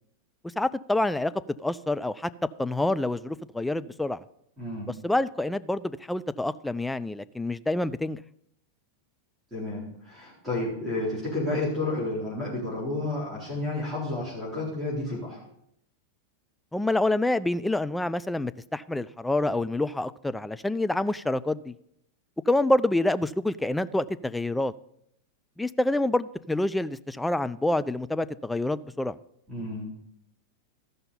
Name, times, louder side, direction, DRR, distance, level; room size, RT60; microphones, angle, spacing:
voice 1, 0.6-1.3 1.6-2.3 2.6-4.2 5.0-8.2 16.7-21.7 22.5-24.7 25.6-29.1, left 1 dB, 5° left, 13 dB, 0.3 m, -27 dB
voice 2, 4.6-4.9 9.5-15.4 29.5-29.9, left 2 dB, 15° right, -6 dB, 4.2 m, -31 dB
14.0 x 5.4 x 5.6 m, 0.75 s
figure-of-eight pair, 90°, 0 cm